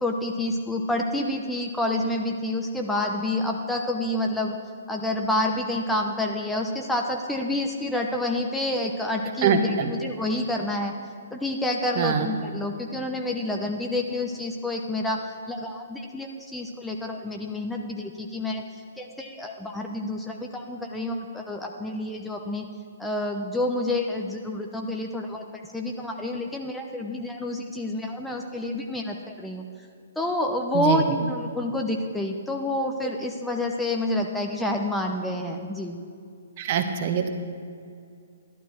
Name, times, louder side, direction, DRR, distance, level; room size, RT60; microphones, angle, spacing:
voice 1, 0.0-4.6 4.9-10.9 11.3-18.6 19.0-22.7 23.0-25.4 25.7-29.6 30.2-36.0, left 1 dB, 5° left, 2 dB, 0.7 m, -28 dB
voice 2, 9.4-9.9 12.0-12.3 30.7-31.0 36.6-37.3, right 7 dB, 40° right, 7 dB, 1.1 m, -23 dB
12.0 x 11.5 x 4.5 m, 2.3 s
figure-of-eight pair, 125°, 0 cm